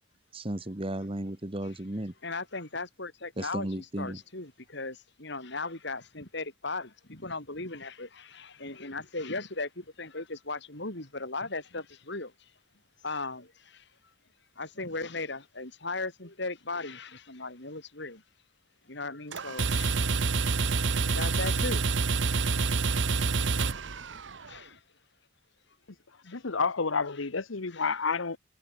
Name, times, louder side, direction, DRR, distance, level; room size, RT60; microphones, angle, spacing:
voice 1, 0.3-2.1 3.4-4.2, right 1 dB, 30° right, 1.4 m, -34 dB
voice 2, 2.2-12.5 13.0-13.9 14.6-18.2 18.9-20.2 20.5-21.9 24.1-24.8 26.2-26.4 27.7-27.9, left 3 dB, 60° left, 5.0 m, -38 dB
sound 1, 19.3-24.5, right 4 dB, 65° right, 1.0 m, -27 dB
voice 3, 26.2-28.4, left 4 dB, 85° left, 1.2 m, -29 dB
head